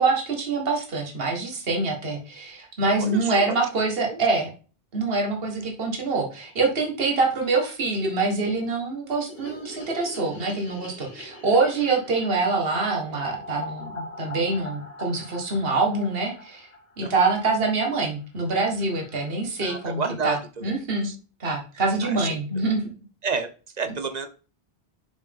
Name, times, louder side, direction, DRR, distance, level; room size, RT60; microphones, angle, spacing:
voice 1, 0.0-4.5 4.9-16.7 17.0-20.4 20.6-21.1 21.4-22.8, right 3 dB, 60° right, 1 dB, 1.7 m, -25 dB
voice 2, 3.0-3.6 4.1-4.2 17.0-17.1 19.6-20.7 21.0-21.2 22.0-22.4 23.2-23.5 23.7-24.3, right 5 dB, 45° right, 9 dB, 0.8 m, -30 dB
sound 1, 9.3-17.5 17.8-17.9 18.1-18.2 18.5-18.6 18.8-19.3, left 1 dB, 70° left, 1.5 m, -42 dB
6.2 x 5.4 x 3.5 m, 0.35 s
omnidirectional pair, 1.1 m